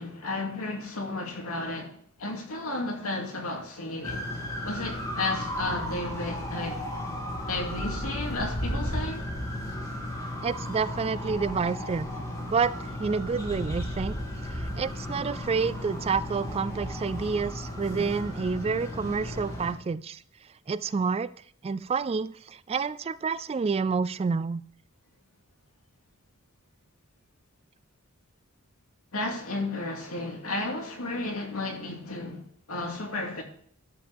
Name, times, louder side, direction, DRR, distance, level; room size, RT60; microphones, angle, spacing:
voice 1, 0.0-4.3 4.6-6.8 7.5-9.2 29.1-33.4, left 2 dB, 85° left, 2.5 m, -33 dB
sound 1, 4.0-19.7, left 1 dB, 15° left, 2.4 m, -34 dB
voice 2, 10.4-12.1 12.5-14.2 14.5-20.2 20.7-21.3 21.6-24.6, right 5 dB, 30° right, 0.3 m, -29 dB
12.0 x 7.7 x 3.5 m
head